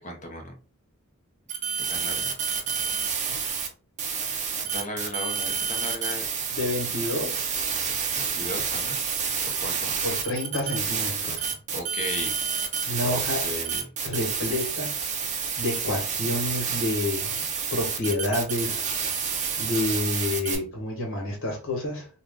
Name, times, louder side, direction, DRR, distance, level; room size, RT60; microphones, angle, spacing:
voice 1, 0.0-0.6 1.7-2.3 4.7-6.3 8.1-9.0 9.6-9.9 11.7-12.4 13.0-13.9, left 1 dB, 35° left, 0.9 m, -36 dB
sound 1, 1.5-3.7 4.0-20.6, right 6 dB, 35° right, 0.6 m, -29 dB
voice 2, 6.5-7.5 10.0-11.5 12.9-13.4 14.0-15.0 15.6-17.4 17.7-18.8 19.6-22.1, left 2 dB, 60° left, 1.4 m, -29 dB
2.7 x 2.4 x 3.7 m
head